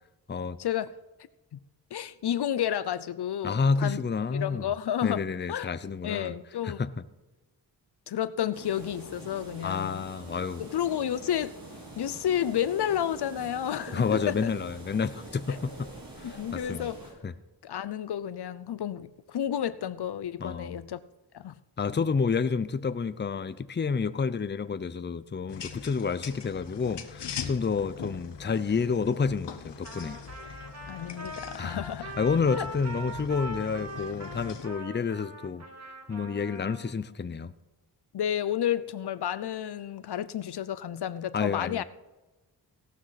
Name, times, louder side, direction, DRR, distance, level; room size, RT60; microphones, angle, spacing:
voice 1, 0.6-0.9 1.5-1.6 1.9-4.0 4.3-5.2 5.5-5.7 6.0-6.8 8.1-10.0 10.6-11.5 12.0-14.5 15.5-15.6 16.2-17.0 17.6-21.0 21.3-21.5 30.9-32.2 32.5-32.6 38.1-41.8, left 10 dB, 70° left, 0.6 m, -31 dB
voice 2, 3.4-4.7 5.0-6.4 6.6-7.0 9.6-10.6 13.9-15.9 16.2-16.9 17.2-17.3 20.4-20.8 21.8-30.2 31.6-31.8 32.2-35.7 36.1-37.5 41.3-41.8, left 5 dB, 25° left, 0.6 m, -29 dB
sound 1, 8.5-17.1, right 1 dB, 55° right, 5.8 m, -45 dB
sound 2, 25.5-34.7, left 7 dB, 90° left, 1.2 m, -42 dB
Trumpet, 29.8-37.0, right 1 dB, 40° right, 2.3 m, -42 dB
17.0 x 12.5 x 4.1 m
wide cardioid pair, 90°, 41 cm